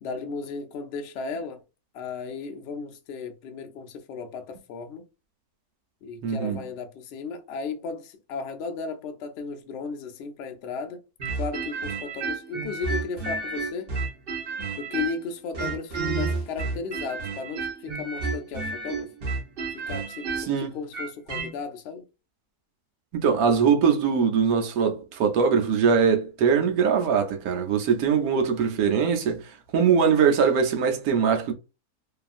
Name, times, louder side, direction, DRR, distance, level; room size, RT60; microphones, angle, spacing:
voice 1, 0.0-1.6 1.9-5.0 6.0-11.0 11.4-13.9 14.8-19.1 19.7-22.1, left 5 dB, 70° left, 0.6 m, -35 dB
voice 2, 6.2-6.6 20.5-20.7 23.1-29.4 29.7-31.5, right 6 dB, 75° right, 1.1 m, -22 dB
sound 1, 11.2-15.2 15.5-21.5, right 4 dB, 45° right, 0.9 m, -31 dB
2.7 x 2.4 x 2.4 m
omnidirectional pair, 1.6 m